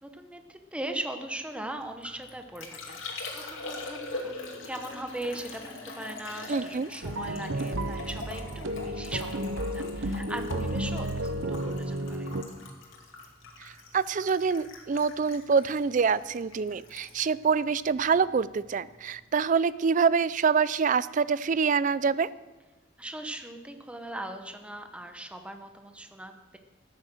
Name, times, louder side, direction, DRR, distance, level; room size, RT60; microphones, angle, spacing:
voice 1, 0.0-12.3 23.0-26.6, right 1 dB, 5° right, 6 dB, 0.9 m, -39 dB
Liquid, 1.8-18.4 18.7-19.2, left 3 dB, 80° left, 2.4 m, -43 dB
voice 2, 6.5-6.9 13.9-22.3, right 5 dB, 40° right, 18 dB, 0.4 m, -25 dB
sound 1, 7.0-12.4, right 1 dB, 75° right, 0.9 m, -32 dB
13.5 x 9.6 x 6.6 m, 1.2 s
head